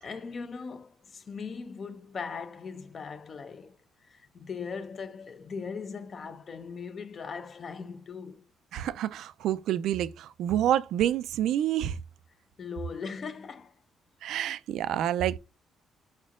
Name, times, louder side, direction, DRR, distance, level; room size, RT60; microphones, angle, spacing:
voice 1, 0.0-3.8 4.0-8.4 12.6-13.8, left 5 dB, 45° left, 0.7 m, -39 dB
voice 2, 8.7-12.0 14.2-15.4, right 11 dB, 80° right, 0.3 m, -28 dB
5.0 x 4.4 x 2.4 m
cardioid pair, 90°, 0 cm